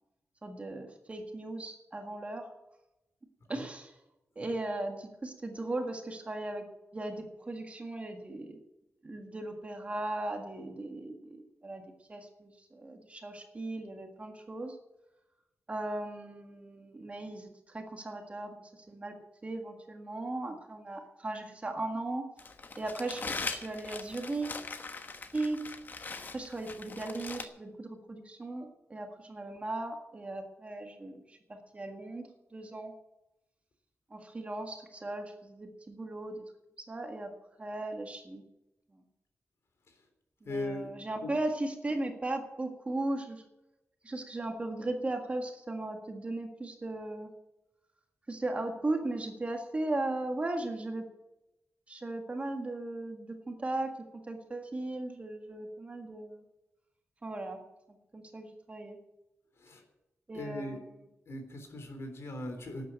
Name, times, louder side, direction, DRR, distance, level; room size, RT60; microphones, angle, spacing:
voice 1, 0.4-2.4 3.5-3.9 4.4-6.6 6.9-8.6 9.0-11.8 12.1-14.8 15.7-19.2 19.4-22.2 22.8-24.6 25.3-25.6 26.3-32.9 34.1-36.4 36.8-37.3 37.6-38.4 38.9-39.0 40.4-43.4 44.0-47.3 48.3-51.0 51.9-53.9 54.3-56.4 57.2-57.6 58.1-59.0 60.3-60.8, right 2 dB, 25° right, 4 dB, 1.7 m, -37 dB
Crumpling crinkling, 22.4-27.5, left 4 dB, 40° left, 1.2 m, -41 dB
voice 2, 40.5-40.9 41.2-41.3 59.6-59.8 60.3-60.8 61.3-62.8, left 1 dB, 60° left, 5 dB, 3.5 m, -39 dB
12.5 x 9.1 x 8.9 m, 0.94 s
wide cardioid pair, 180°, 5 cm